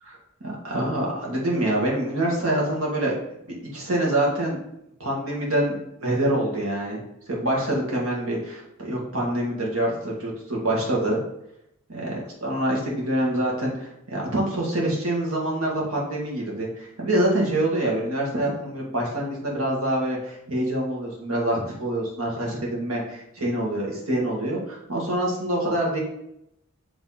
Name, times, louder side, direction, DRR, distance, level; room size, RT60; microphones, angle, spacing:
voice 1, 0.4-3.2 3.5-4.6 5.0-7.0 7.3-11.2 11.9-26.0, right 1 dB, 80° right, -3 dB, 1.9 m, -26 dB
8.1 x 3.4 x 4.2 m, 0.79 s
head